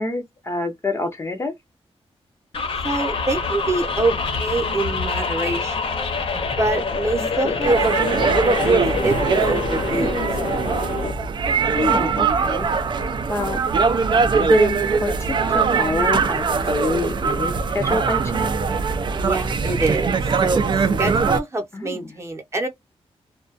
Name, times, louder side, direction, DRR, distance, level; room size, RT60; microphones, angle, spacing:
voice 1, 0.0-1.5 7.2-7.7 11.7-12.7 13.3-13.6 14.4-18.5 21.7-22.1, left 2 dB, 25° left, 0.5 m, -26 dB
sound 1, 2.5-11.1, left 4 dB, 60° left, 0.8 m, -26 dB
voice 2, 2.8-5.8 6.6-8.3 8.6-8.7 9.0-10.2 19.1-22.7, right 2 dB, 25° right, 0.8 m, -25 dB
sound 2, 7.6-21.4, right 5 dB, 45° right, 0.4 m, -21 dB
2.3 x 2.2 x 2.5 m
wide cardioid pair, 170°, 11 cm